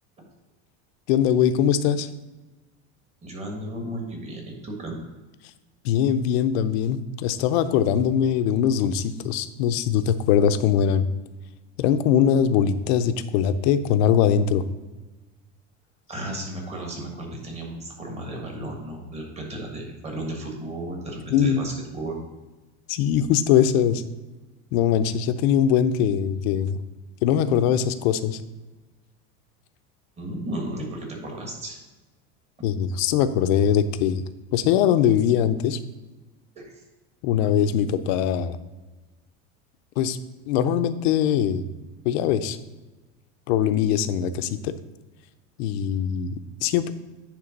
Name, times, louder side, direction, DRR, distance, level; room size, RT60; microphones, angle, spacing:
voice 1, 1.1-2.1 5.8-11.1 11.8-14.6 21.3-21.6 22.9-24.0 24.7-26.8 27.2-28.4 32.6-34.2 34.5-35.8 37.2-38.6 40.0-40.2 40.5-41.7 42.0-42.6 43.5-44.7 45.6-46.9, left 9 dB, 65° left, 11 dB, 0.6 m, -21 dB
voice 2, 3.2-5.1 16.1-22.2 30.2-31.8 36.5-36.8, right 1 dB, 20° right, 0 dB, 1.5 m, -34 dB
9.8 x 3.3 x 5.2 m, 1.2 s
cardioid pair, 155°, 34 cm